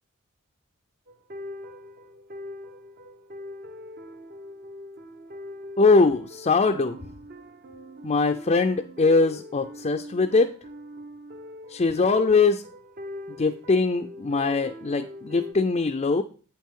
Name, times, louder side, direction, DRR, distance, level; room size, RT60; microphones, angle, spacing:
sound 1, 1.1-15.5, left 1 dB, 45° right, 0.7 m, -42 dB
voice 1, 5.8-7.0 8.0-10.5 11.7-12.6 13.4-16.2, left 3 dB, 30° left, 5 dB, 0.4 m, -22 dB
8.5 x 7.3 x 3.7 m, 0.39 s
head